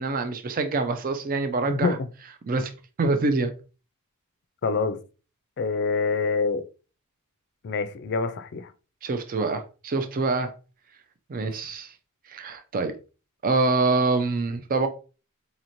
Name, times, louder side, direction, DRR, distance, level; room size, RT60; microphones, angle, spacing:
voice 1, 0.0-2.0 2.5-2.7 3.0-3.5 9.0-10.5 11.3-11.9 12.3-12.9 13.4-14.9, right 3 dB, 40° right, 0.4 m, -25 dB
voice 2, 1.6-2.1 3.0-3.1 4.6-5.0 5.6-6.6 7.6-8.7 11.4-11.5, left 4 dB, 50° left, 0.4 m, -26 dB
4.1 x 3.0 x 2.6 m
head